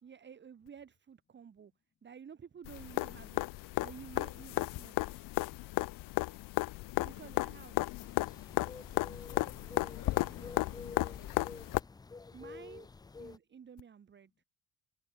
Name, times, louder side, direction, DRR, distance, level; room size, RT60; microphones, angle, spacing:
voice 1, 0.0-1.7 2.0-5.3 7.0-7.9 12.3-12.9 13.2-14.4, right 7 dB, 30° right, 2.3 m, -52 dB
sound 1, 2.6-11.8 13.8-13.9, left 19 dB, 65° left, 0.5 m, -34 dB
voice 2, 2.9-3.3 7.0-8.1 9.2-11.8 12.4-12.9 13.2-13.3, left 7 dB, 30° left, 2.4 m, -59 dB
sound 2, 8.0-13.4, left 4 dB, 10° left, 0.4 m, -49 dB
open air
cardioid pair, 160°, 36 cm